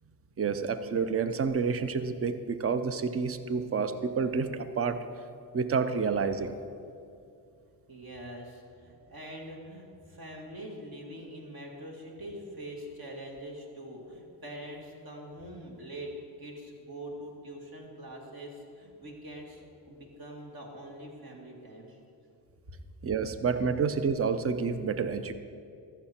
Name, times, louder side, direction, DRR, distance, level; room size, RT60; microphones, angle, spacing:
voice 1, 0.4-5.0 5.5-6.6 23.0-25.3, right 5 dB, 30° right, 11 dB, 0.7 m, -29 dB
voice 2, 7.9-16.1 16.4-19.6 19.9-22.0, right 1 dB, 50° right, 0 dB, 2.2 m, -44 dB
14.0 x 5.9 x 4.4 m, 2.4 s
hypercardioid pair, 45°, 45 cm